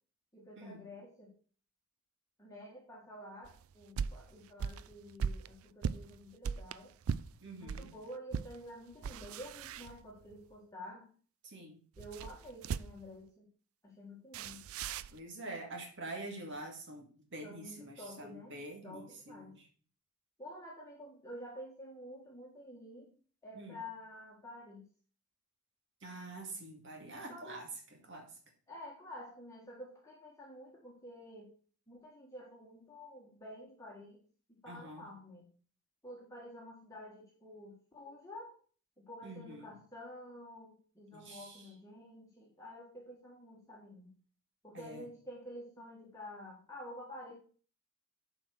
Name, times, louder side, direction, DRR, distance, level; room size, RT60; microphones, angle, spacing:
voice 1, 0.3-1.3 2.4-7.0 7.6-11.1 12.0-13.5 13.8-14.6 17.4-18.5 18.8-19.6 20.4-23.1 23.4-24.9 27.3-27.7 28.7-31.5 31.9-34.2 34.5-35.5 36.0-38.5 39.0-44.1 44.6-47.3, left 1 dB, 15° left, -3 dB, 1.5 m, -50 dB
sound 1, 3.4-7.9 8.3-8.6 8.9-10.4 12.0-13.2 14.3-15.2, right 6 dB, 70° right, 0.4 m, -39 dB
voice 2, 7.4-7.9 11.4-11.8 15.1-19.6 23.5-23.8 26.0-27.7 28.1-28.3 34.7-35.1 39.2-39.8 41.1-41.6 44.7-45.1, right 2 dB, 55° right, 2 dB, 2.2 m, -46 dB
7.4 x 5.0 x 6.4 m, 0.42 s
head